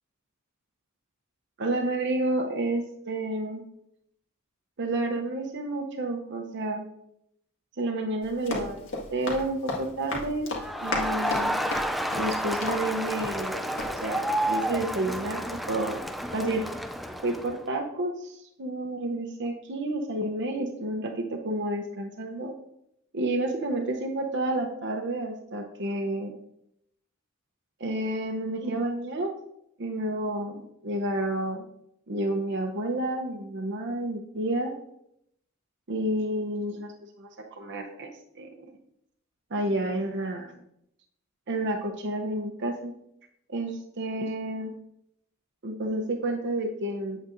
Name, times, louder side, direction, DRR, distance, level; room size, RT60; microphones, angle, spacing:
voice 1, 1.6-3.6 4.8-6.8 7.8-10.5 10.8-11.6 12.1-16.0 16.3-16.6 17.2-22.5 23.1-26.3 27.8-29.3 29.8-31.6 32.1-34.7 35.9-36.9 37.2-38.1 38.3-38.5 39.5-40.6 41.5-42.9 43.5-44.7 45.6-47.2, right 1 dB, 60° right, 2 dB, 0.8 m, -30 dB
Run, 8.2-13.5 13.8-13.9, left 2 dB, 65° left, 1.8 m, -35 dB
Crowd, 10.6-17.6, equal, ahead, 0.4 m, -30 dB
8.5 x 8.3 x 2.6 m, 0.76 s
head